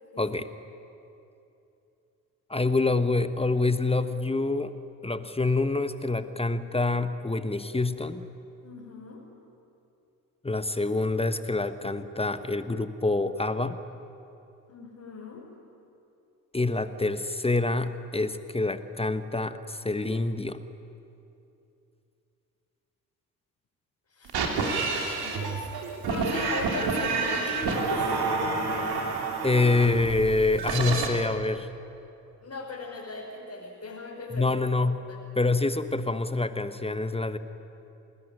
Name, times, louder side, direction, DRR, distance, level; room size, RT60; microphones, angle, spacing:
voice 1, 0.2-0.5 2.5-4.7 5.0-8.3 10.4-13.8 16.5-20.6 29.4-31.7 34.3-35.0 35.4-37.4, left 3 dB, 15° left, 11 dB, 1.3 m, -26 dB
voice 2, 8.6-9.2 14.7-15.5 24.1-28.4 28.8-29.1 32.4-34.5 35.1-35.2, left 3 dB, 35° left, -4 dB, 5.3 m, -38 dB
sound 1, 24.3-31.1, right 4 dB, 55° right, 3.4 m, -29 dB
26.0 x 20.0 x 9.8 m, 2.8 s
figure-of-eight pair, 45°, 44 cm